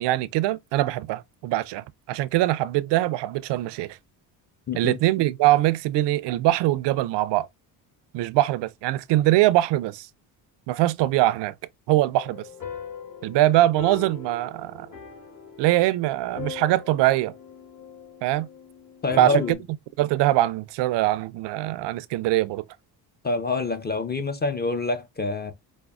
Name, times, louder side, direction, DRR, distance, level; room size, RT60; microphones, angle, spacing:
voice 1, 0.0-4.0 4.8-7.5 8.1-10.1 10.7-11.5 11.9-12.4 13.2-14.9 15.6-17.3 18.2-18.5 19.2-19.4 20.0-22.6, right 15 dB, 70° right, 0.5 m, -22 dB
voice 2, 4.7-5.0 19.0-19.6 23.2-25.5, left 3 dB, 20° left, 0.6 m, -26 dB
sound 1, 12.1-19.5, left 6 dB, 45° left, 2.2 m, -41 dB
5.1 x 2.0 x 2.3 m
cardioid pair, 80°, 44 cm